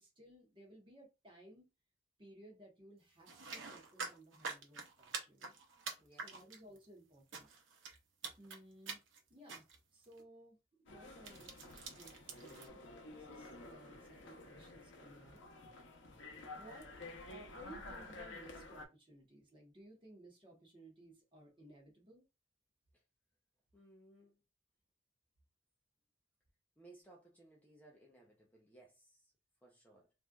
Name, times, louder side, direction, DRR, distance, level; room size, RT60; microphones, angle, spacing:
voice 1, 0.0-1.7 2.2-5.5 6.1-7.5 8.4-9.0 9.3-9.6 9.9-10.6 10.8-15.4 16.5-16.9 17.3-22.3, right 1 dB, 25° right, 1.1 m, -59 dB
sound 1, 3.3-6.9 7.3-8.0 8.2-8.6 8.9-9.2 9.5-9.8 10.0-10.2 11.2-12.7, right 4 dB, 85° right, 0.7 m, -46 dB
voice 2, 6.0-6.4 22.9-23.0 23.7-24.4 26.8-29.3 29.6-30.1, right 2 dB, 10° left, 0.6 m, -62 dB
sound 2, 10.9-18.9, left 2 dB, 80° left, 0.7 m, -52 dB
3.1 x 2.5 x 2.3 m
head